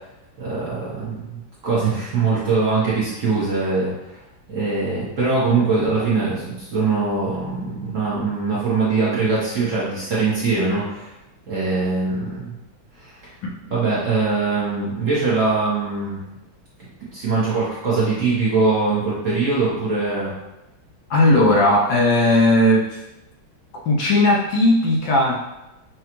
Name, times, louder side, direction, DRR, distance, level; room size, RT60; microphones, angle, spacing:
voice 1, 0.4-4.2 4.5-11.1 11.5-12.5 13.0-13.1 13.7-16.2 17.1-20.3, right 4 dB, 50° right, -9 dB, 1.1 m, -22 dB
voice 2, 21.1-23.0 23.9-25.4, left 1 dB, 70° left, -3 dB, 1.3 m, -17 dB
6.2 x 2.3 x 2.9 m, 0.96 s
omnidirectional pair, 2.3 m